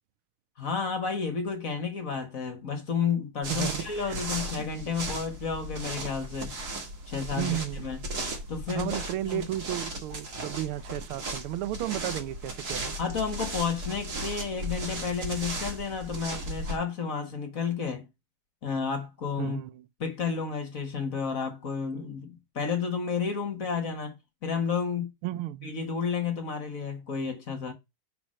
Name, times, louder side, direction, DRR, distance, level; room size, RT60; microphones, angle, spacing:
voice 1, 0.6-6.5 7.1-8.0 8.5-9.5 13.0-18.1 18.6-19.6 20.0-24.1 24.4-25.1 25.6-27.7, left 6 dB, 45° left, 1.5 m, -31 dB
sound 1, 3.4-16.8, right 1 dB, 50° right, 2.3 m, -36 dB
voice 2, 3.5-4.3 4.6-4.7 7.4-7.9 8.7-12.9 19.4-19.9 25.2-25.7, right 14 dB, 85° right, 1.5 m, -33 dB
5.9 x 4.4 x 6.2 m
omnidirectional pair, 2.3 m